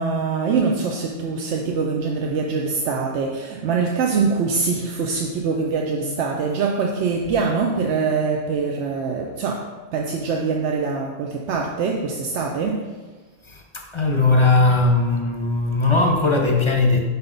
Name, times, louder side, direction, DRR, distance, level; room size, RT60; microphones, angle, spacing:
voice 1, 0.0-13.0, right 4 dB, 80° right, 0.9 m, -24 dB
voice 2, 13.4-17.0, left 3 dB, 30° left, 0.7 m, -19 dB
5.8 x 5.5 x 3.9 m
omnidirectional pair, 1.2 m